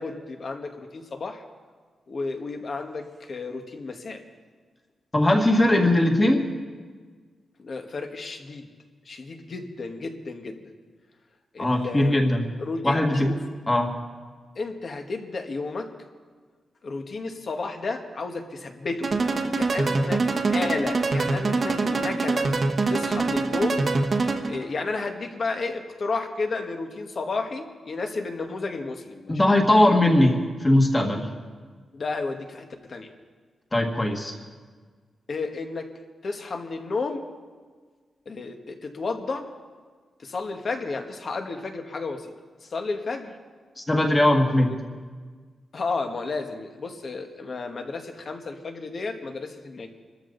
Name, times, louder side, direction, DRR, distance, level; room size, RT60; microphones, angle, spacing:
voice 1, 0.0-1.4 2.1-4.2 7.6-8.7 9.0-10.6 11.5-12.2 12.6-13.4 14.5-15.9 16.8-19.1 19.5-22.5 22.9-23.9 24.5-29.4 31.9-33.1 35.3-35.9 36.2-37.3 38.2-39.6 40.2-42.3 42.6-43.4 44.5-44.8 45.7-49.9, left 3 dB, 45° left, 4 dB, 1.6 m, -32 dB
voice 2, 5.1-6.5 11.6-12.5 12.8-13.3 13.7-13.9 29.3-31.3 33.7-34.3 43.8-44.7, left 1 dB, 20° left, 2 dB, 1.9 m, -20 dB
sound 1, 19.0-24.7, right 3 dB, 40° right, 1.3 m, -24 dB
25.5 x 13.5 x 4.0 m, 1.5 s
wide cardioid pair, 140°, 0 cm